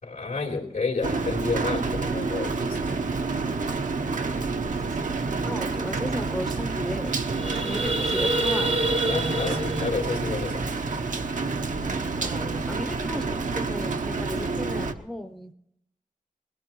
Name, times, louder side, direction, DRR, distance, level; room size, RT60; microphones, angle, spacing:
voice 1, 0.0-2.8 9.0-10.7, left 4 dB, 80° left, -1 dB, 3.3 m, -30 dB
Rain, 1.0-14.9, right 4 dB, 70° right, 0.9 m, -29 dB
voice 2, 4.6-9.0 12.1-15.5, equal, ahead, 8 dB, 0.7 m, -36 dB
sound 1, 7.1-11.3, right 2 dB, 50° right, 1.1 m, -28 dB
20.5 x 17.5 x 3.1 m, 0.78 s
cardioid pair, 55°, 14 cm